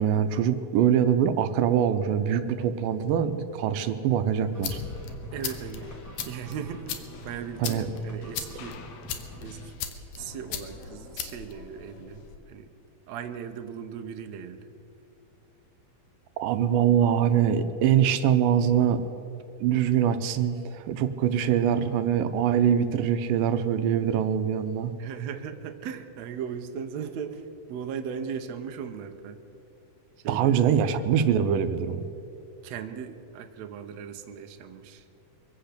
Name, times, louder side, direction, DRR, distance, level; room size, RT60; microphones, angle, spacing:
voice 1, 0.0-4.8 7.6-7.9 16.4-19.0 19.6-24.9 30.3-32.1, right 9 dB, 85° right, 10 dB, 2.4 m, -23 dB
sound 1, 4.3-12.4, left 7 dB, 75° left, 2.4 m, -39 dB
sound 2, 4.5-9.7, equal, 25° left, 0.4 m, -46 dB
voice 2, 5.3-5.9 6.3-8.8 9.4-9.8 10.2-12.7 13.1-14.7 21.5-21.6 25.0-29.4 30.2-31.0 32.6-35.1, right 7 dB, 70° right, 6 dB, 1.8 m, -38 dB
24.0 x 8.0 x 6.7 m, 2.8 s
omnidirectional pair, 3.9 m